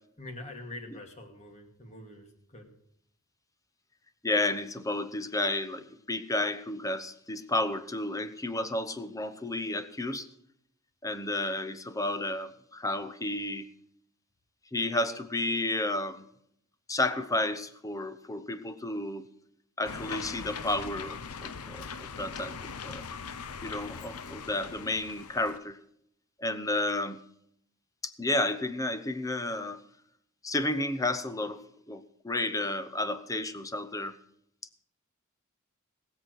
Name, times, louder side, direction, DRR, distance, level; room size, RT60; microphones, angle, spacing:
voice 1, 0.2-2.7, left 2 dB, 30° left, 3 dB, 2.5 m, -45 dB
voice 2, 4.2-10.3 11.0-13.7 14.7-16.3 16.9-19.3 19.8-23.0 23.6-25.8 26.4-27.2 28.0-29.8 30.4-31.6 31.9-34.2, left 2 dB, 15° left, 11 dB, 0.9 m, -32 dB
sound 1, 19.8-25.6, left 5 dB, 90° left, 0.8 m, -41 dB
19.0 x 7.6 x 6.3 m, 0.71 s
head